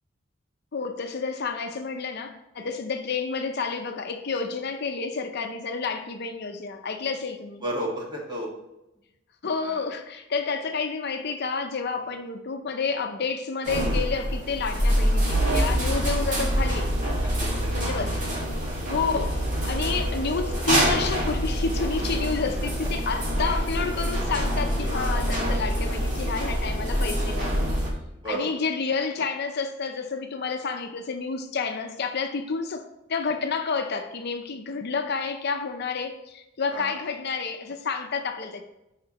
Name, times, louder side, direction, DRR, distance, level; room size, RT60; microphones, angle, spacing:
voice 1, 0.7-7.6 9.4-16.9 17.7-18.2 18.9-19.4 19.6-27.7 28.3-38.6, left 4 dB, 60° left, 6 dB, 0.6 m, -30 dB
voice 2, 7.6-8.5 9.6-9.8 12.0-12.1 17.2-17.8 18.3-18.8 22.4-22.5 22.8-22.9 28.1-28.5 36.7-36.9, right 1 dB, 25° right, -2 dB, 1.8 m, -34 dB
sound 1, 13.6-27.9, equal, 40° right, 2.0 m, -26 dB
9.1 x 5.8 x 3.0 m, 0.91 s
head